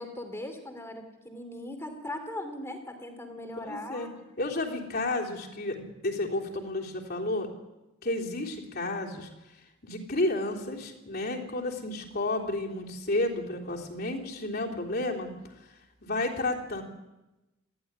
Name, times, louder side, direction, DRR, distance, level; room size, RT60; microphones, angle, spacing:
voice 1, 0.0-4.1, left 1 dB, 10° left, 5 dB, 2.8 m, -39 dB
voice 2, 3.6-4.1 4.4-7.5 8.0-9.3 9.8-15.3 16.0-16.8, left 2 dB, 45° left, -2 dB, 3.5 m, -31 dB
20.5 x 15.0 x 9.7 m, 1.0 s
head